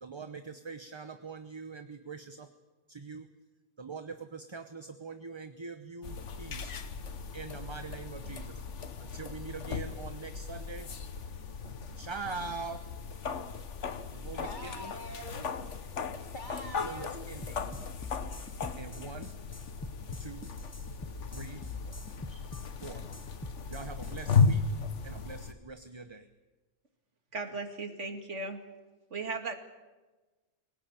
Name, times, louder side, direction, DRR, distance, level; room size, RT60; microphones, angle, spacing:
voice 1, 0.0-2.5 2.9-3.3 3.8-6.7 7.3-8.6 9.0-10.9 12.0-12.8 14.1-14.9 16.8-17.9 18.7-19.3 20.2-20.5 21.3-21.6 22.3-22.5 22.8-23.0 23.7-24.6 25.0-26.3, right 4 dB, 25° right, 0.9 m, -43 dB
sound 1, 6.0-25.5, left 5 dB, 80° left, 1.6 m, -35 dB
voice 2, 14.4-15.5 16.3-17.3, left 1 dB, 40° left, 2.6 m, -43 dB
sound 2, 17.4-24.5, left 2 dB, 15° left, 0.8 m, -44 dB
voice 3, 27.3-28.6 29.1-29.5, right 3 dB, 80° right, 2.6 m, -36 dB
25.5 x 18.0 x 9.0 m
omnidirectional pair, 1.2 m